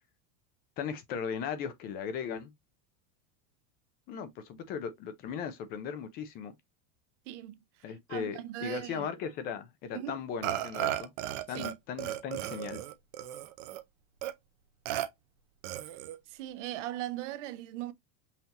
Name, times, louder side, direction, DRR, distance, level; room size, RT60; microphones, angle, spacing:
voice 1, 0.8-2.5 4.1-6.5 7.8-11.1 11.5-12.8, left 7 dB, 25° left, 0.5 m, -37 dB
voice 2, 7.3-7.6 8.1-9.1 9.9-10.2 11.6-11.7 15.9-16.0 16.3-17.9, right 14 dB, 60° right, 0.8 m, -39 dB
Burping eructation, 10.4-11.7 12.0-13.8 14.2-14.3 14.9-15.1 15.6-16.2, right 13 dB, 35° right, 0.4 m, -35 dB
5.7 x 2.8 x 2.8 m
supercardioid pair, 170°, 41 cm